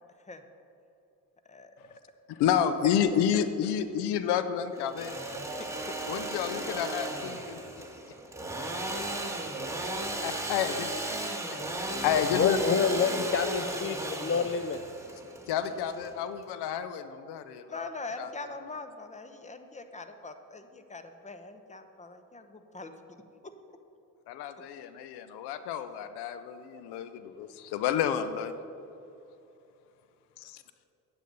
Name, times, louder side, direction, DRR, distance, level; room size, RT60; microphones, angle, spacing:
voice 1, 2.3-5.2 6.1-7.6 9.7-9.8 10.2-10.9 11.5-11.6 12.0-12.6 15.5-17.9 18.2-18.3 24.3-28.5 30.4-30.6, left 9 dB, 75° left, 11 dB, 0.6 m, -30 dB
Engine / Sawing, 4.8-16.4, right 2 dB, 5° right, 1.7 m, -35 dB
voice 2, 5.6-6.0 17.7-22.9, left 3 dB, 15° left, 8 dB, 1.0 m, -42 dB
voice 3, 12.1-14.8, left 6 dB, 35° left, 9 dB, 0.5 m, -28 dB
9.0 x 8.2 x 5.4 m, 2.8 s
hypercardioid pair, 50°, 40 cm